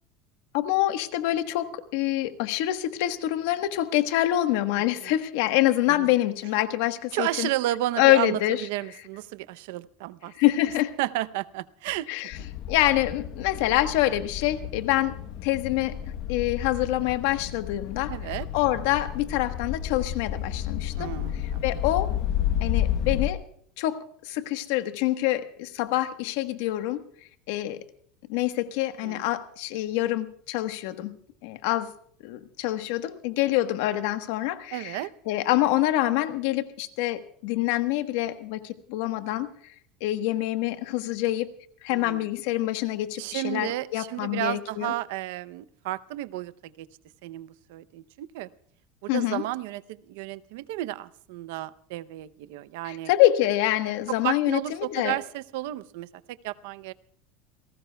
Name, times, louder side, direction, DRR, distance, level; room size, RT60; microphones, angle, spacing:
voice 1, 0.5-7.5 8.0-8.6 10.4-10.9 12.1-12.4 12.7-15.2 15.4-16.0 16.3-18.1 18.5-21.1 21.6-22.1 22.6-23.4 23.8-27.0 27.5-27.8 28.3-31.2 31.4-31.9 32.2-35.0 35.3-39.5 40.0-41.5 41.8-44.9 49.1-49.4 52.8-54.6 54.9-55.2, left 15 dB, 70° left, 9 dB, 1.3 m, -26 dB
voice 2, 7.1-10.3 11.0-12.1 18.1-18.5 21.0-21.6 29.0-29.2 34.7-35.1 41.9-42.3 43.2-46.9 47.2-48.5 49.0-53.1 54.1-56.9, right 15 dB, 75° right, 15 dB, 0.7 m, -32 dB
sound 1, 12.3-23.3, left 10 dB, 50° left, 1.0 m, -31 dB
29.0 x 18.0 x 2.3 m, 0.64 s
cardioid pair, 165°, 0 cm